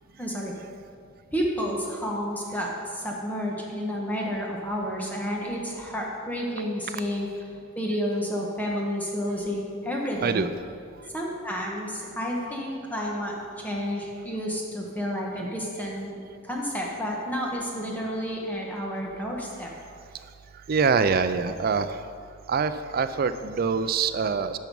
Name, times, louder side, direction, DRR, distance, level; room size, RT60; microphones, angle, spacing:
voice 1, 0.2-0.5 1.3-7.5 7.8-10.5 11.1-16.2 16.4-19.7, equal, 10° left, -2 dB, 1.2 m, -30 dB
voice 2, 20.7-22.0 22.5-24.6, right 5 dB, 45° right, 11 dB, 0.4 m, -24 dB
11.0 x 5.9 x 5.3 m, 2.3 s
head